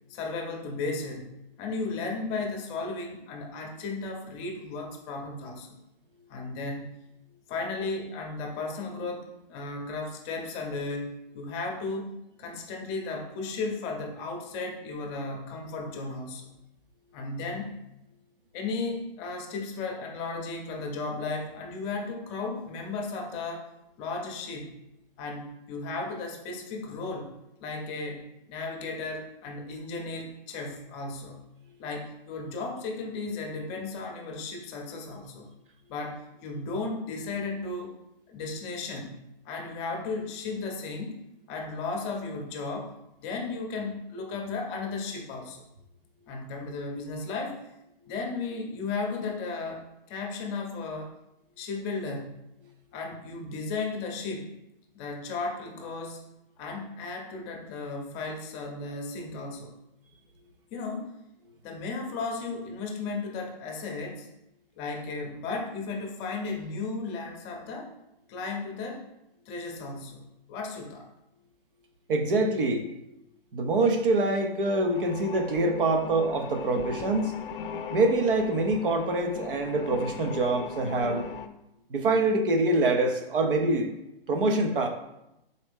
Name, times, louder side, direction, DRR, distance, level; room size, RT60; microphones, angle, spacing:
voice 1, 0.1-5.8 6.3-6.9 7.5-12.1 12.4-16.5 17.1-17.8 18.5-23.7 24.0-24.7 25.2-27.3 27.6-31.4 31.8-35.5 35.9-38.0 38.3-41.2 41.5-43.0 43.2-45.6 46.3-47.6 48.1-51.1 51.6-52.4 52.9-54.5 54.9-56.2 56.6-59.7 60.7-61.1 61.6-64.3 64.8-67.9 68.3-69.1 69.5-71.1, left 3 dB, 30° left, 2 dB, 0.7 m, -35 dB
voice 2, 72.1-72.9 73.5-77.4 77.9-81.3 81.9-83.9 84.3-84.9, right 2 dB, 65° right, 5 dB, 0.8 m, -25 dB
sound 1, 74.9-81.5, left 6 dB, 65° left, 0.5 m, -39 dB
4.1 x 3.1 x 3.5 m, 0.87 s
hypercardioid pair, 130°, 29 cm